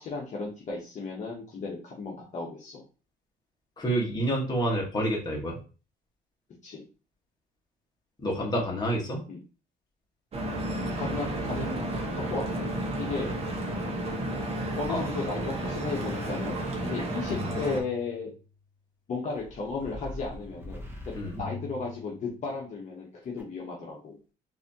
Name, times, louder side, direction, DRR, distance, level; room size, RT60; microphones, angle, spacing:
voice 1, 0.0-2.8 6.6-6.8 9.3-9.4 11.0-13.4 14.8-18.3 19.1-24.2, left 4 dB, 45° left, -2 dB, 1.0 m, -35 dB
voice 2, 3.8-5.6 8.2-9.2 14.9-15.0 21.1-21.3, right 1 dB, 25° left, -2 dB, 1.4 m, -28 dB
Stream / Boat Water vehicle, 10.3-17.8, right 1 dB, 35° right, 1.1 m, -32 dB
sound 1, 14.0-18.6 19.3-22.6 23.4-23.5, left 2 dB, 15° right, 1.1 m, -44 dB
4.0 x 2.8 x 2.8 m, 0.35 s
cardioid pair, 110°, 17 cm